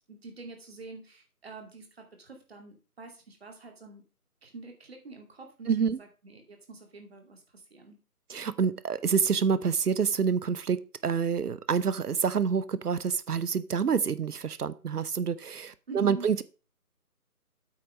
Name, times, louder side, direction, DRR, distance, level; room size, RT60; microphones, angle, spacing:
voice 1, 0.1-4.0 4.4-8.0 15.9-16.3, right 3 dB, 40° right, 4 dB, 2.4 m, -46 dB
voice 2, 5.7-6.0 8.3-10.8 11.0-16.4, right 6 dB, 80° right, 17 dB, 0.8 m, -27 dB
8.6 x 5.9 x 5.2 m, 0.35 s
figure-of-eight pair, 165°, 46 cm